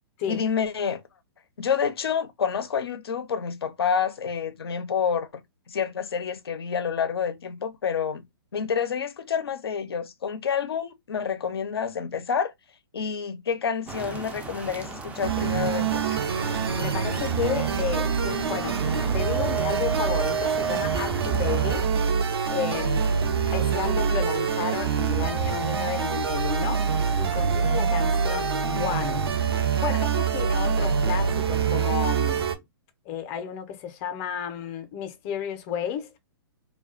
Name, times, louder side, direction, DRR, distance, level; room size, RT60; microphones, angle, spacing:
voice 1, 0.3-1.0 1.6-5.4 5.7-8.2 8.5-12.5 12.9-16.2, left 7 dB, 80° left, 0.6 m, -28 dB
sound 1, 13.9-21.9, right 2 dB, 10° right, 0.4 m, -38 dB
sound 2, 15.2-32.6, right 6 dB, 75° right, 0.6 m, -25 dB
voice 2, 16.7-21.9 22.5-23.0 23.5-32.6 33.1-36.2, left 8 dB, 35° left, 0.6 m, -32 dB
2.3 x 2.2 x 2.4 m
hypercardioid pair, 125°, 13 cm